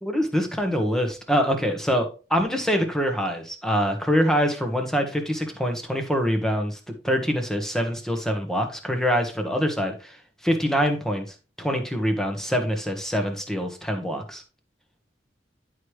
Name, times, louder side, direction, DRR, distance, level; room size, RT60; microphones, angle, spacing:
voice 1, 0.0-6.8 7.0-10.2 10.4-11.2 11.6-14.4, equal, 5° left, 4 dB, 1.3 m, -24 dB
10.5 x 4.8 x 3.2 m, 0.33 s
head